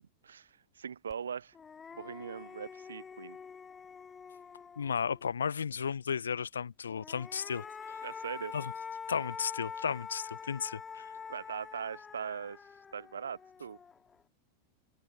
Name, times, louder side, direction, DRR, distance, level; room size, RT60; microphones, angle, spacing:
voice 1, 0.2-1.6 1.9-3.4 8.0-8.5 11.3-13.8, right 7 dB, 70° right, 0.5 m, -41 dB
sound 1, 1.1-1.2 1.5-5.2 6.9-14.1, left 6 dB, 20° left, 4.7 m, -45 dB
voice 2, 4.8-8.0 8.5-8.7 9.1-11.1, left 7 dB, 70° left, 1.2 m, -34 dB
figure-of-eight pair, 90°, 0 cm